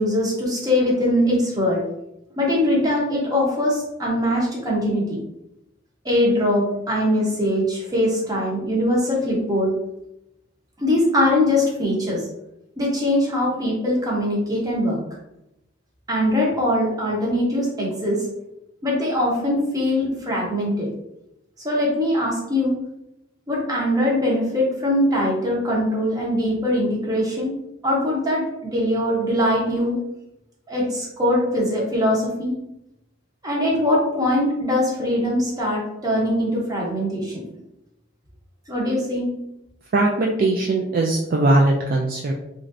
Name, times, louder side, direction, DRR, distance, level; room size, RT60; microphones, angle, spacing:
voice 1, 0.0-1.9 2.4-5.2 6.0-9.7 10.8-12.2 12.8-15.0 16.1-18.3 18.8-20.9 21.6-22.8 23.5-27.5 27.8-30.0 30.7-32.6 33.4-37.4 38.7-39.3, left 1 dB, 20° right, -3 dB, 0.8 m, -22 dB
voice 2, 39.9-42.3, right 2 dB, 45° right, 0 dB, 0.3 m, -20 dB
3.1 x 2.5 x 2.5 m, 0.86 s
head